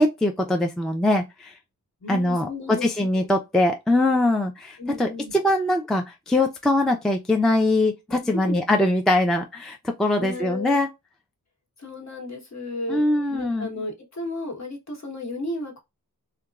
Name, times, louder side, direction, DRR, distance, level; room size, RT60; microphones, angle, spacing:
voice 1, 0.0-1.5 2.1-10.9 12.9-13.7, left 1 dB, ahead, 0.3 m, -22 dB
voice 2, 2.0-3.3 4.8-5.3 8.3-8.5 10.2-10.8 11.8-13.0 13.3-15.8, left 2 dB, 50° left, 1.2 m, -33 dB
2.9 x 2.2 x 2.2 m
wide cardioid pair, 110°, 36 cm